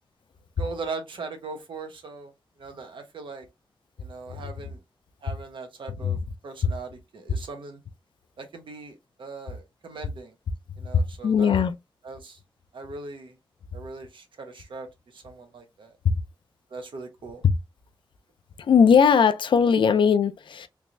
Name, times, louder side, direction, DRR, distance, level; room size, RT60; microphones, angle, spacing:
voice 1, 0.6-2.3 2.6-3.5 4.0-4.8 5.2-6.2 6.4-7.8 8.4-10.3 10.8-11.6 12.0-12.4 12.7-13.4 13.7-14.9 15.1-15.9 16.7-17.4, right 3 dB, 85° right, 1.0 m, -39 dB
voice 2, 10.9-11.7 16.0-16.2 17.4-17.5 18.6-20.7, left 6 dB, 85° left, 0.5 m, -19 dB
3.4 x 3.1 x 2.5 m
wide cardioid pair, 120°, 8 cm